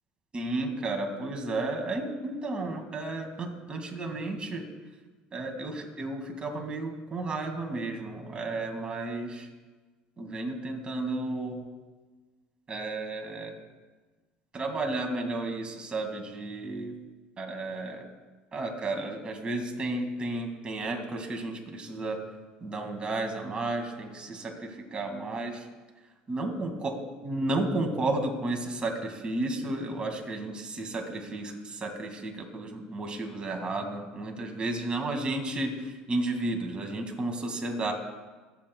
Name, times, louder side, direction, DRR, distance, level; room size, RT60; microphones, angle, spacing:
voice 1, 0.3-4.7 5.3-9.5 10.2-11.6 12.7-13.6 14.5-17.0 17.4-18.1 18.5-22.2 22.6-25.7 26.3-26.9 27.2-37.9, right 2 dB, 30° right, 3 dB, 2.1 m, -32 dB
23.0 x 8.1 x 2.3 m, 1.3 s
supercardioid pair, 90°, 4 cm